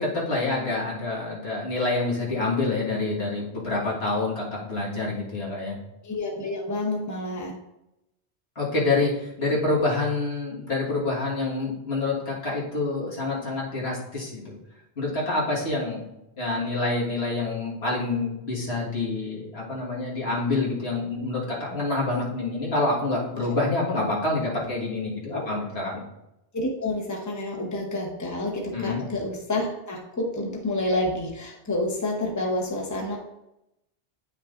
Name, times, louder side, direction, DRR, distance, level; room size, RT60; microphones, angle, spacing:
voice 1, 0.0-5.8 8.6-14.6 15.0-16.0 16.4-26.0 28.7-29.0, left 2 dB, 75° left, -5 dB, 2.0 m, -27 dB
voice 2, 6.0-7.5 23.4-23.5 25.3-25.5 26.5-33.2, left 1 dB, 20° left, -1 dB, 0.9 m, -29 dB
9.1 x 5.8 x 2.5 m, 0.89 s
omnidirectional pair, 1.1 m